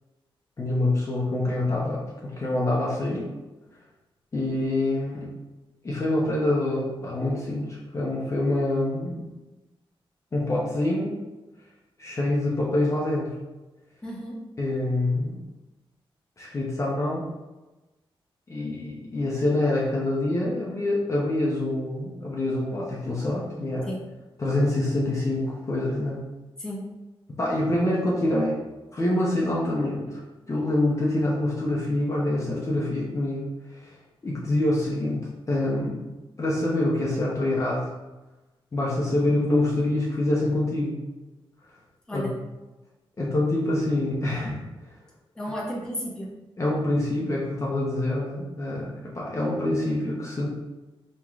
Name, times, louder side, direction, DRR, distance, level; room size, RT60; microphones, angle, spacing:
voice 1, 0.6-3.3 4.3-5.3 5.8-9.3 10.3-11.2 12.0-13.3 14.6-15.4 16.4-17.2 18.5-23.9 24.4-26.3 27.4-28.6 28.9-30.2 30.5-33.9 34.2-36.1 36.4-37.8 38.7-41.0 42.1-42.2 43.2-44.6 46.6-48.9 49.1-50.5, left 1 dB, 30° left, -5 dB, 0.8 m, -26 dB
voice 2, 14.0-14.3 23.8-24.0 26.6-26.9 42.1-42.4 45.3-46.3, equal, 10° left, -5 dB, 0.9 m, -33 dB
5.3 x 3.1 x 2.4 m, 1.1 s
wide cardioid pair, 135°, 10 cm